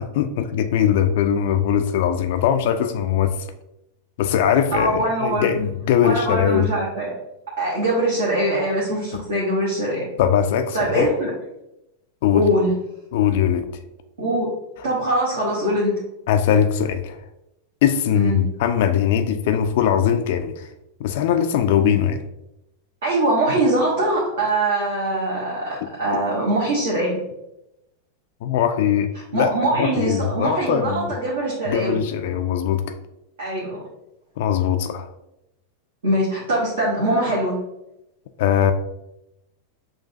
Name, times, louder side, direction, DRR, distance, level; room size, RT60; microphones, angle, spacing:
voice 1, 0.0-3.4 4.2-6.7 10.2-11.1 12.2-12.4 13.1-13.7 16.3-17.2 17.8-20.7 21.0-22.2 28.4-31.1 31.7-32.9 34.4-35.1 38.4-38.7, left 9 dB, 50° left, 8 dB, 0.3 m, -21 dB
voice 2, 4.7-5.5 6.0-7.1 7.6-10.0 10.7-11.3 12.3-12.7 14.2-14.5 14.8-15.9 18.1-18.4 23.0-27.2 29.3-32.0 33.4-33.8 36.0-37.6, right 1 dB, 60° right, -6 dB, 1.1 m, -22 dB
6.4 x 2.4 x 2.7 m, 0.88 s
figure-of-eight pair, 90°, 0 cm